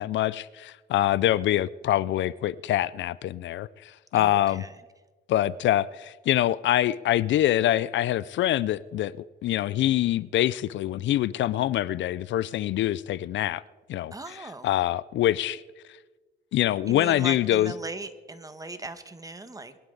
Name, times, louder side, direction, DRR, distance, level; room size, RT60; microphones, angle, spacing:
voice 1, 0.0-4.6 5.3-9.1 9.4-13.6 13.9-14.1 14.6-15.6 16.5-17.7, left 13 dB, 70° left, 0.4 m, -25 dB
voice 2, 4.1-4.7 14.1-14.7 16.9-19.8, right 2 dB, 15° right, 1.4 m, -39 dB
22.5 x 11.5 x 3.9 m
cardioid pair, 90°, 20 cm